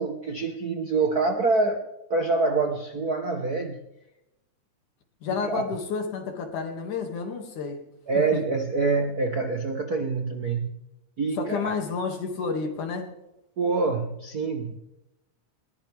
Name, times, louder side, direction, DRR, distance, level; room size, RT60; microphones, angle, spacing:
voice 1, 0.0-1.8 2.1-3.8 5.3-5.6 8.1-10.7 11.2-11.7 13.6-14.8, right 4 dB, 55° right, 4 dB, 1.0 m, -26 dB
voice 2, 5.2-7.8 11.4-13.1, left 5 dB, 80° left, 4 dB, 3.7 m, -30 dB
21.5 x 19.0 x 3.5 m, 0.91 s
omnidirectional pair, 3.5 m